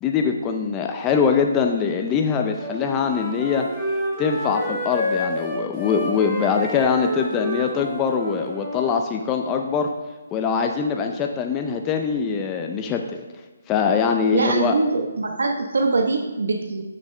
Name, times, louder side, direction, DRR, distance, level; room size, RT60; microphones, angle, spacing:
voice 1, 0.0-3.7 4.2-9.9 10.3-13.0 13.7-14.7, left 6 dB, 15° left, 4 dB, 0.5 m, -23 dB
Wind instrument woodwind instrument, 2.6-9.0, left 1 dB, ahead, 2.4 m, -29 dB
voice 2, 14.3-16.8, right 3 dB, 80° right, 4 dB, 0.9 m, -23 dB
9.7 x 6.4 x 3.3 m, 1.3 s
hypercardioid pair, 160°, 0 cm